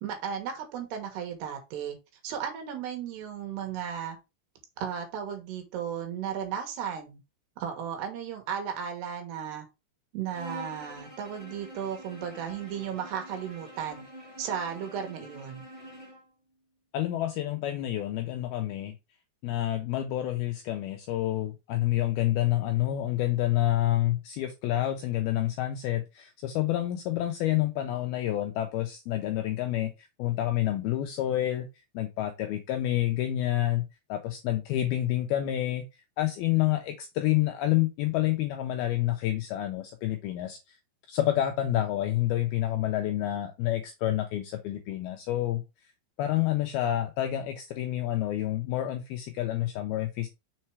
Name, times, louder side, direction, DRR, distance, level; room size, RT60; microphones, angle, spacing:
voice 1, 0.0-2.0 2.2-4.2 4.8-7.2 7.6-9.7 10.1-14.0 14.4-15.6, right 8 dB, 70° right, 5 dB, 3.3 m, -35 dB
Bowed string instrument, 10.3-16.3, equal, 30° right, 0.5 m, -46 dB
voice 2, 16.9-18.9 19.4-31.7 31.9-33.8 34.1-35.8 36.2-40.8 41.1-45.6 46.2-50.3, left 14 dB, 85° left, 4 dB, 2.2 m, -28 dB
6.5 x 4.5 x 4.6 m, 0.26 s
omnidirectional pair, 5.2 m